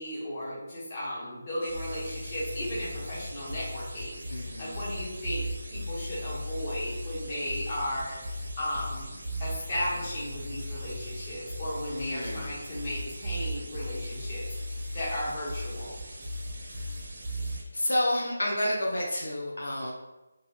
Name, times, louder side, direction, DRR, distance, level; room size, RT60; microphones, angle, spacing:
voice 1, 0.0-9.1 9.4-14.4 14.9-16.0, equal, 30° left, -7 dB, 1.0 m, -35 dB
sound 1, 1.6-17.6, right 2 dB, 50° right, 0.5 m, -45 dB
sound 2, 1.7-17.6, left 1 dB, ahead, 0.8 m, -37 dB
voice 2, 4.3-4.8 11.9-12.5 16.6-16.9 17.7-19.9, left 1 dB, 80° left, -2 dB, 0.6 m, -30 dB
3.2 x 2.3 x 2.4 m, 1.0 s
figure-of-eight pair, 170°, 0 cm